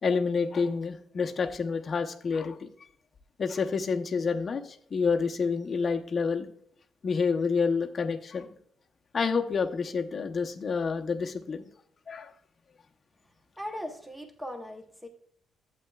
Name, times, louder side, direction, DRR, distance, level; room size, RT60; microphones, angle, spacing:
voice 1, 0.0-2.7 3.4-4.6 4.9-6.5 7.0-8.5 9.1-11.7 12.1-12.3, left 5 dB, 30° left, 4 dB, 0.8 m, -28 dB
voice 2, 13.6-15.1, equal, ahead, 5 dB, 0.9 m, -39 dB
12.0 x 8.4 x 2.3 m, 0.64 s
cardioid pair, 155°, 0 cm